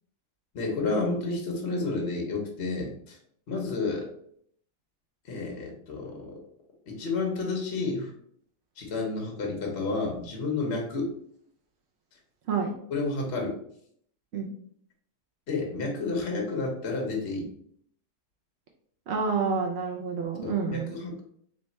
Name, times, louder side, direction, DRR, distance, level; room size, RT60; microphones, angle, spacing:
voice 1, 0.5-3.2 3.5-4.1 5.2-6.4 6.9-8.1 8.8-11.1 12.1-12.2 12.9-13.6 15.5-17.5 20.4-21.2, left 3 dB, 50° left, 1 dB, 1.0 m, -30 dB
voice 2, 19.1-20.9, right 5 dB, 65° right, 1 dB, 0.7 m, -28 dB
3.3 x 3.2 x 4.0 m, 0.66 s
omnidirectional pair, 1.6 m